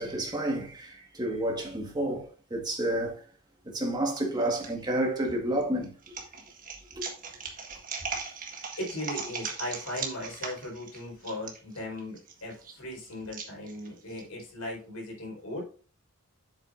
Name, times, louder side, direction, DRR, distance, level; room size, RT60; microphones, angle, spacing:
voice 1, 0.0-3.2 3.6-6.2 6.9-7.0 8.0-8.2, right 1 dB, 20° right, 1.7 m, -30 dB
sound 1, 4.1-4.7 5.3-14.2, right 5 dB, 40° right, 1.5 m, -39 dB
voice 2, 8.7-15.6, left 1 dB, 80° left, 4.3 m, -38 dB
8.1 x 7.5 x 2.6 m
head